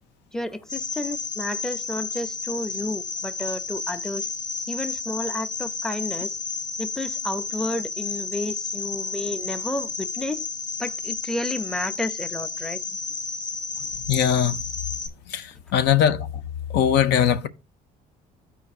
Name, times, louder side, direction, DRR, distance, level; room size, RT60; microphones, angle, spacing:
voice 1, 0.3-4.3 4.7-6.4 6.8-10.4 10.8-12.8, left 1 dB, 5° left, 0.5 m, -31 dB
Cricket, 0.7-15.1, left 5 dB, 50° left, 0.9 m, -32 dB
voice 2, 14.1-14.6 15.3-16.3 16.7-17.5, left 9 dB, 80° left, 0.6 m, -20 dB
13.5 x 4.7 x 2.4 m
cardioid pair, 110°, 17 cm